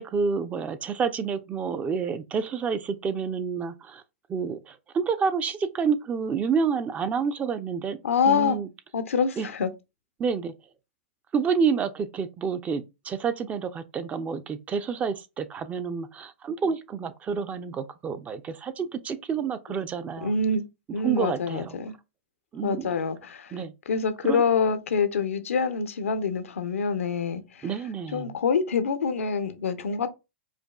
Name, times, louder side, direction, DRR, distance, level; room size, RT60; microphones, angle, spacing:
voice 1, 0.0-4.0 4.3-8.0 8.2-8.7 9.4-9.5 10.2-10.5 11.3-20.3 21.0-21.8 22.5-23.0 23.5-23.7 24.2-24.4 27.6-28.4, right 6 dB, 20° right, 0.4 m, -29 dB
voice 2, 8.0-8.6 8.9-9.7 19.7-19.8 20.2-20.6 20.9-21.9 22.6-23.6 23.9-27.7 28.1-30.1, left 5 dB, 85° left, 0.6 m, -26 dB
4.9 x 2.3 x 2.3 m
hypercardioid pair, 130°, 7 cm